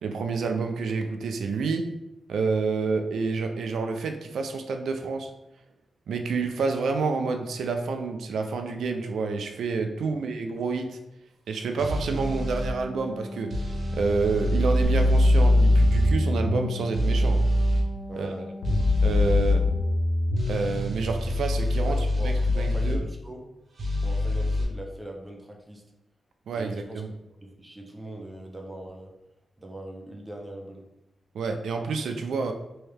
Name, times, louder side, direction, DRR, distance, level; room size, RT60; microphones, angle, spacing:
voice 1, 0.0-1.9 2.3-5.3 6.1-11.0 11.5-17.4 18.2-18.3 19.0-19.6 20.5-22.0 22.2-23.0 26.5-27.1 31.3-32.5, right 4 dB, 85° right, 5 dB, 0.3 m, -28 dB
sound 1, 11.8-12.7 13.5-16.1 16.9-17.8 18.6-19.6 20.4-23.0 23.8-24.6, equal, 45° right, 0.7 m, -25 dB
Wind instrument woodwind instrument, 12.0-20.0, left 2 dB, 30° left, 0.6 m, -40 dB
sound 2, 14.8-16.8 18.6-20.6 22.5-22.6, left 4 dB, 90° left, 0.5 m, -24 dB
voice 2, 18.1-18.5 21.8-23.4 24.0-25.8 26.5-27.0 27.4-29.1 29.6-30.9, right 1 dB, 15° right, 1 dB, 0.5 m, -40 dB
3.2 x 2.7 x 3.3 m, 0.91 s
wide cardioid pair, 170°, 0 cm